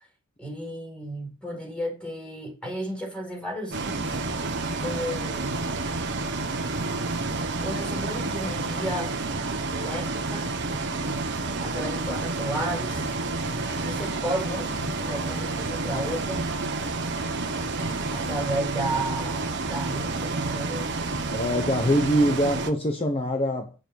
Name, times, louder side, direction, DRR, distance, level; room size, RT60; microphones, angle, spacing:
voice 1, 0.4-4.2 4.8-5.7 7.6-9.2 9.7-10.6 11.0-11.3 11.6-13.1 13.8-14.7 15.0-16.5 18.1-20.9, right 1 dB, 5° left, 4.3 m, -33 dB
Bus, 3.7-22.7, right 3 dB, 55° right, 1.4 m, -29 dB
sound 1, 6.5-10.3, right 3 dB, 70° right, 0.9 m, -45 dB
Boiling, 10.4-21.7, left 1 dB, 45° left, 2.4 m, -48 dB
voice 2, 21.3-23.7, equal, 25° left, 1.0 m, -24 dB
9.2 x 7.6 x 4.7 m
head